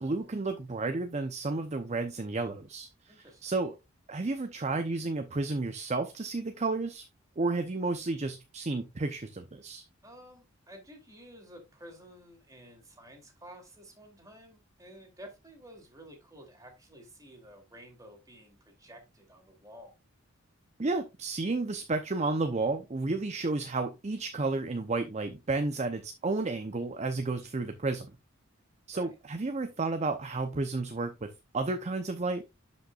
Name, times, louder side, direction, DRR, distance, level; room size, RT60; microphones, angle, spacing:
voice 1, 0.0-3.7 4.1-7.0 7.4-9.8 20.8-28.1 28.9-32.4, right 3 dB, 35° right, 0.7 m, -32 dB
voice 2, 3.1-3.5 10.0-19.9 28.9-29.1, equal, 15° right, 2.8 m, -52 dB
11.5 x 5.4 x 2.4 m
head